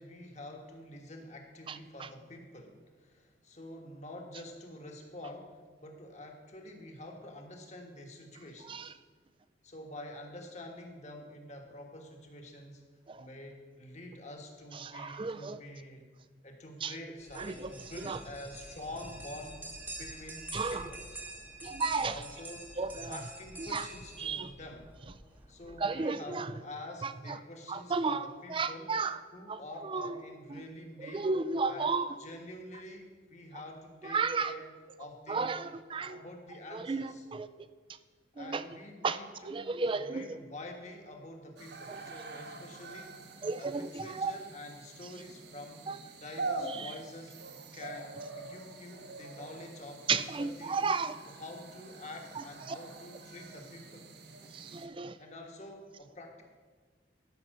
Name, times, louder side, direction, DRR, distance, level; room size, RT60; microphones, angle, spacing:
voice 1, 0.0-8.9 9.6-12.8 13.2-16.1 16.4-19.6 20.0-21.2 21.9-24.9 25.5-29.0 29.3-31.3 31.6-35.5 36.0-37.3 38.3-43.1 43.6-45.9 46.2-47.4 47.7-50.8 51.2-54.1 55.2-56.4, left 1 dB, 40° left, 3 dB, 1.5 m, -47 dB
voice 2, 14.8-15.6 16.8-16.9 17.4-17.7 18.0-18.2 20.5-20.9 21.6-22.2 22.8-23.2 23.7-23.8 24.2-24.5 25.8-26.5 27.0-27.1 27.7-28.2 28.5-29.2 29.5-30.1 31.1-32.1 34.1-34.5 35.3-36.2 36.7-37.5 38.4-38.6 39.0-39.2 39.4-40.2 41.9-42.0 43.4-44.4 45.9-46.0 46.6-46.9 50.1-51.2 52.7-52.8 54.5-55.2, right 4 dB, 25° right, 13 dB, 0.4 m, -33 dB
sound 1, 17.2-25.8, right 1 dB, 10° right, 1.1 m, -47 dB
sound 2, 41.6-54.9, right 3 dB, 60° right, 1.1 m, -45 dB
13.0 x 5.8 x 6.6 m, 1.5 s
head